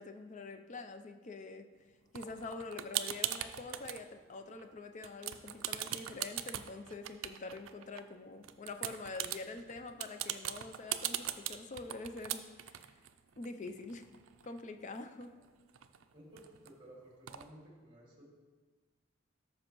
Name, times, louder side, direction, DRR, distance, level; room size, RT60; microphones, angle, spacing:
voice 1, 0.0-1.6 2.1-12.9 13.4-14.0 14.4-15.3, left 3 dB, 35° left, 8 dB, 0.4 m, -45 dB
sound 1, 2.1-4.0 4.4-4.8 5.0-8.0 8.4-14.6 14.9-15.0 15.2-16.7 17.3-17.4, right 12 dB, 75° right, 0.4 m, -40 dB
voice 2, 16.1-18.2, right 1 dB, 25° right, -3 dB, 2.2 m, -55 dB
13.0 x 5.4 x 3.0 m, 1.4 s
head